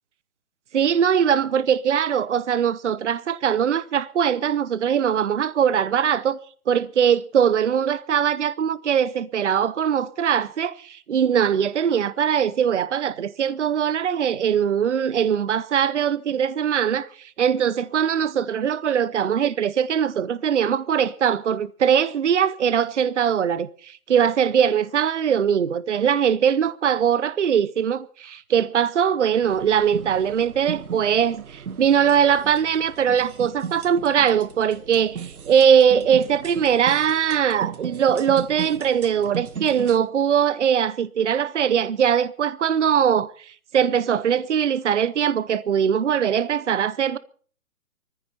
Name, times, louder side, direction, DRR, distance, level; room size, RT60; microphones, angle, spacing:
voice 1, 0.7-6.4 6.7-47.2, right 8 dB, 55° right, 0.8 m, -21 dB
sound 1, 29.4-40.0, right 7 dB, 75° right, 1.5 m, -37 dB
19.5 x 14.5 x 4.1 m
hypercardioid pair, 175°, 43 cm